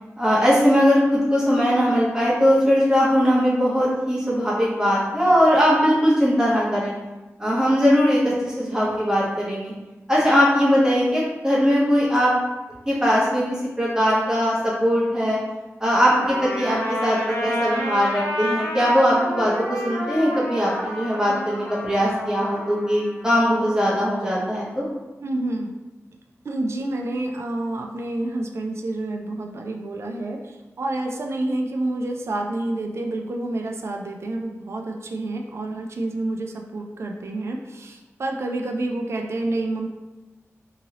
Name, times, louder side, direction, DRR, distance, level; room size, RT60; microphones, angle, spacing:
voice 1, 0.2-6.9 7.4-9.7 10.1-12.3 12.9-13.4 13.8-15.4 15.8-24.8, equal, 15° right, -7 dB, 0.8 m, -20 dB
Trumpet, 16.2-23.3, left 1 dB, 80° left, 0.8 m, -30 dB
voice 2, 25.2-25.7 26.4-39.9, right 2 dB, 60° right, 2 dB, 0.3 m, -28 dB
2.8 x 2.7 x 2.7 m, 1.1 s
wide cardioid pair, 100°, 5 cm